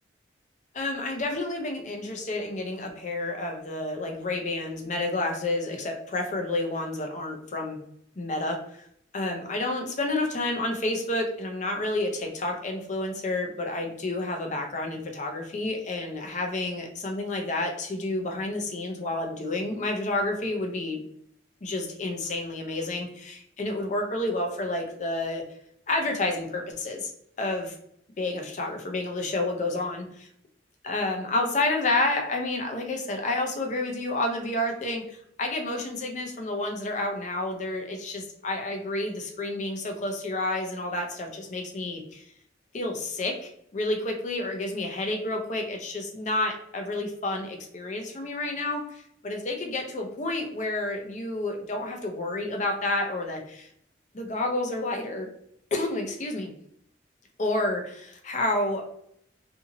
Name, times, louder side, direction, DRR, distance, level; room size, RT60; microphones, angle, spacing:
voice 1, 0.7-7.8 8.2-8.6 9.1-21.0 21.6-25.4 25.9-27.1 27.4-27.7 28.2-30.3 30.8-42.3 42.7-53.7 54.1-55.3 55.7-56.5 57.4-58.8, left 2 dB, 40° left, 3 dB, 0.5 m, -30 dB
2.8 x 2.6 x 2.6 m, 0.70 s
head